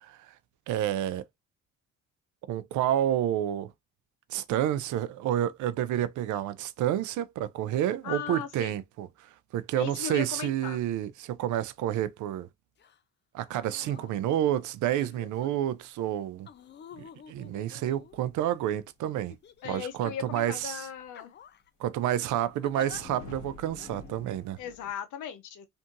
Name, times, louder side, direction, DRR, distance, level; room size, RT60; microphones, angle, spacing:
voice 1, 0.0-0.3 0.7-1.2 2.5-3.7 4.3-9.1 9.5-12.5 13.3-16.5 17.0-19.3 19.6-20.9 21.8-24.6, right 11 dB, 75° right, 0.5 m, -29 dB
voice 2, 8.0-8.8 9.7-10.8 19.6-21.3 24.6-25.7, left 9 dB, 80° left, 0.7 m, -37 dB
sound 1, 12.8-13.0 13.5-14.1 14.9-15.5 16.5-18.5 19.3-20.0 20.4-20.6 21.1-21.7 22.6-23.0 23.8-23.9, left 8 dB, 35° left, 0.4 m, -49 dB
sound 2, 18.0-19.1 19.6-19.9 20.9-21.0 22.1-24.9, left 2 dB, 60° left, 1.4 m, -48 dB
2.6 x 2.6 x 2.5 m
cardioid pair, 90°, 30 cm